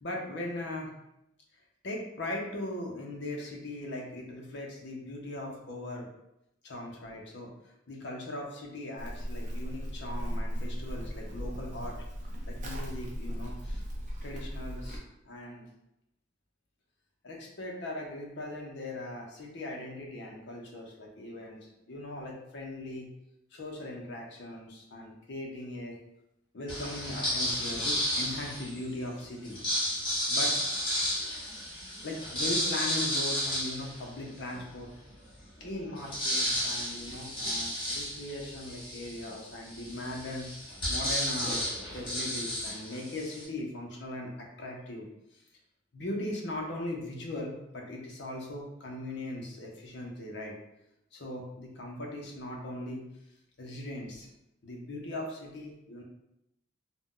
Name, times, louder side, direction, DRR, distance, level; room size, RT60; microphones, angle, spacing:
voice 1, 0.0-0.9 1.8-6.1 6.6-7.5 7.9-12.0 12.5-13.8 14.2-15.6 17.2-23.1 23.5-26.0 26.5-29.6 30.3-30.7 31.1-31.3 32.0-34.9 35.6-40.5 40.9-41.6 41.9-45.1 45.3-45.4 45.9-50.5 51.1-53.0 53.6-54.3 54.6-56.0, left 1 dB, 60° left, -1 dB, 0.6 m, -39 dB
Livestock farm animals working animals, 9.0-15.0, equal, 40° right, 0.5 m, -37 dB
sound 1, 26.7-28.8 29.4-34.6 35.1-35.2 35.4-43.4, equal, 25° left, 1.1 m, -32 dB
2.5 x 2.1 x 3.6 m, 0.84 s
head